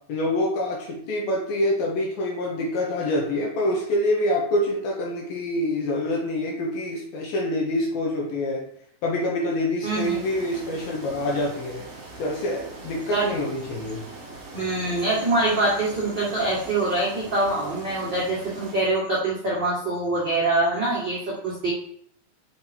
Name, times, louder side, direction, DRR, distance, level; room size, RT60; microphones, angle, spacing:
voice 1, 0.1-8.6 9.0-11.8 12.2-14.0, left 1 dB, 70° left, -2 dB, 2.5 m, -26 dB
sound 1, 9.8-18.8, right 2 dB, 50° right, 2.3 m, -41 dB
voice 2, 9.8-10.2 13.1-13.3 14.5-21.7, right 2 dB, 70° right, -8 dB, 1.0 m, -24 dB
6.3 x 5.8 x 4.4 m, 0.66 s
omnidirectional pair, 5.4 m